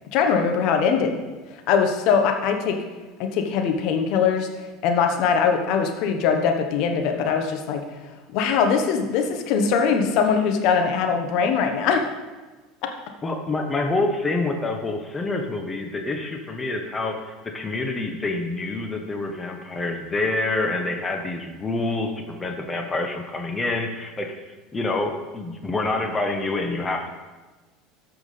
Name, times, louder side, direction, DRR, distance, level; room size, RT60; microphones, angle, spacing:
voice 1, 0.1-1.2 1.5-2.8 3.2-12.1, left 6 dB, 60° left, 4 dB, 1.2 m, -22 dB
voice 2, 13.2-24.4 24.7-27.1, left 2 dB, 20° left, 4 dB, 1.1 m, -27 dB
13.5 x 6.1 x 3.4 m, 1.2 s
hypercardioid pair, 75°, 0 cm